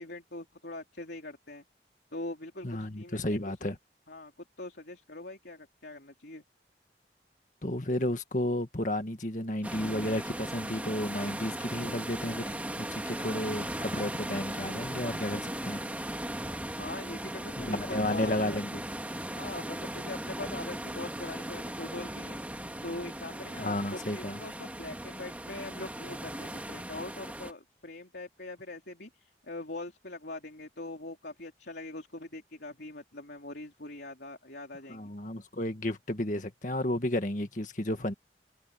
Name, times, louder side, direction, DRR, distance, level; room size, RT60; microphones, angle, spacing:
voice 1, 0.0-1.6 2.1-3.5 4.1-6.4 16.7-18.6 19.3-22.4 22.8-35.1, left 2 dB, 70° left, 3.2 m, -42 dB
voice 2, 2.6-3.8 7.6-15.8 17.6-18.9 23.5-24.4 34.9-38.1, left 1 dB, 45° left, 1.9 m, -32 dB
sound 1, 9.6-27.5, right 1 dB, 10° right, 1.8 m, -38 dB
head